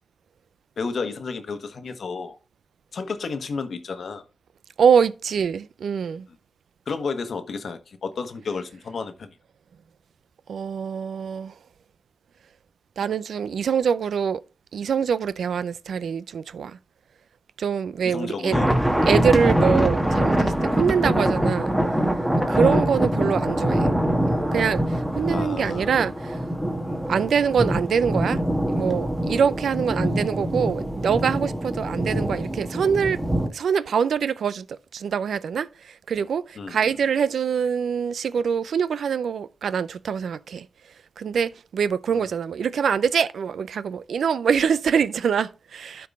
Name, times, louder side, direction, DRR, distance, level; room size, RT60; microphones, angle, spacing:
voice 1, 0.8-2.4 2.9-4.2 6.9-9.3 18.0-18.7 22.5-22.8 25.3-26.0 26.8-27.0 36.6-36.9 42.1-42.3, left 4 dB, 70° left, 1.1 m, -32 dB
voice 2, 4.8-6.3 10.5-11.5 13.0-14.4 14.7-16.8 17.6-18.6 19.0-21.7 22.5-23.9 24.5-26.4 27.1-28.4 28.7-33.2 33.5-34.7 34.9-40.7 41.2-46.1, right 7 dB, 85° right, 0.4 m, -24 dB
sound 1, 18.5-33.5, right 1 dB, 10° right, 1.3 m, -24 dB
12.0 x 4.7 x 3.6 m
cardioid pair, 70°, 0 cm